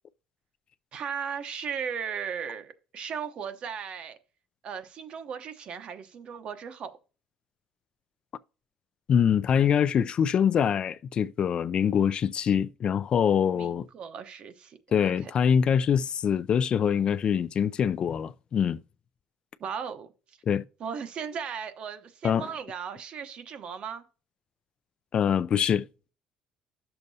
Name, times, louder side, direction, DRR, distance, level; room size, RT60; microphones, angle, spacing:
voice 1, 0.9-4.2 4.6-6.9 13.5-15.3 19.6-20.1 20.8-24.0, right 7 dB, 55° right, 1.0 m, -36 dB
voice 2, 9.1-13.9 14.9-18.8 20.5-20.6 22.2-22.5 25.1-25.9, left 8 dB, 45° left, 0.3 m, -24 dB
10.5 x 6.7 x 2.8 m
cardioid pair, 105°, 2 cm